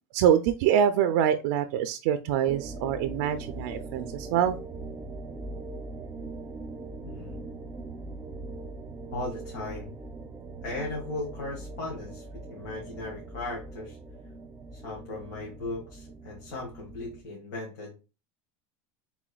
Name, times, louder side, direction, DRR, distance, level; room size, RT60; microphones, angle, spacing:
voice 1, 0.1-4.6, right 9 dB, 70° right, 10 dB, 0.4 m, -25 dB
sound 1, 2.5-17.2, right 3 dB, 20° right, 0.6 m, -41 dB
voice 2, 7.0-7.4 9.1-9.9 10.6-14.0 14.7-17.9, left 2 dB, 85° left, -3 dB, 1.9 m, -37 dB
6.2 x 3.6 x 2.3 m, 0.30 s
cardioid pair, 160°, 9 cm